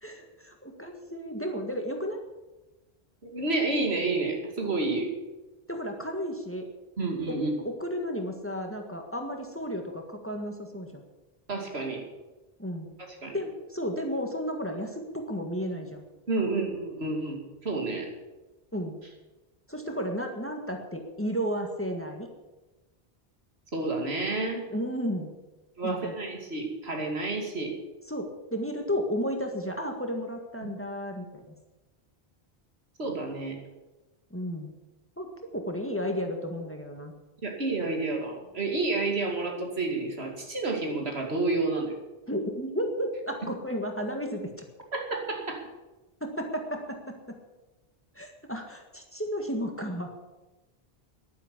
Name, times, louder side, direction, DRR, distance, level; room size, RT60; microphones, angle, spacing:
voice 1, 0.0-2.2 5.7-6.7 7.3-7.4 7.6-11.0 12.6-12.9 13.3-16.0 18.7-18.9 19.7-22.3 24.7-25.3 25.8-26.1 28.1-31.5 34.3-34.7 35.2-37.1 42.3-44.6 46.2-47.4 48.1-50.1, equal, 10° left, 3 dB, 1.7 m, -33 dB
voice 2, 3.2-5.1 7.0-7.5 11.5-12.0 13.2-13.4 16.3-18.1 23.7-24.6 25.8-27.7 30.6-30.7 33.0-33.6 37.4-42.0 44.9-45.6, right 3 dB, 85° right, 1 dB, 2.8 m, -30 dB
11.0 x 10.5 x 8.3 m, 1.1 s
omnidirectional pair, 1.0 m